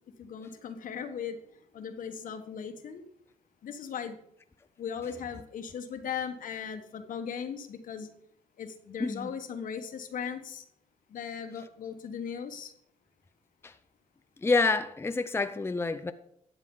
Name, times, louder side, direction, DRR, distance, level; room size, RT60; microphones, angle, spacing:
voice 1, 0.1-3.0 3.6-4.2 4.8-8.1 8.6-10.6 11.1-12.7, left 7 dB, 65° left, 1.4 m, -38 dB
voice 2, 14.4-16.1, left 3 dB, 15° left, 0.6 m, -28 dB
12.5 x 8.1 x 3.9 m
cardioid pair, 80°, 15 cm